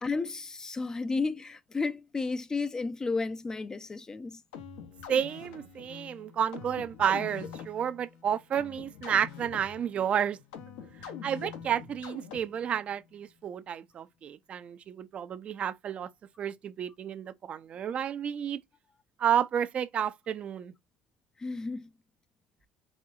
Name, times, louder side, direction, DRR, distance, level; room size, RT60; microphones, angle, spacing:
voice 1, 0.0-4.4 21.4-21.9, left 4 dB, 20° left, 0.4 m, -32 dB
sound 1, 4.5-12.7, left 7 dB, 85° left, 0.9 m, -45 dB
voice 2, 5.1-10.4 11.0-16.1 16.4-18.6 19.2-20.7, right 9 dB, 45° right, 0.4 m, -31 dB
4.2 x 2.6 x 2.4 m
supercardioid pair, 95°, 3 cm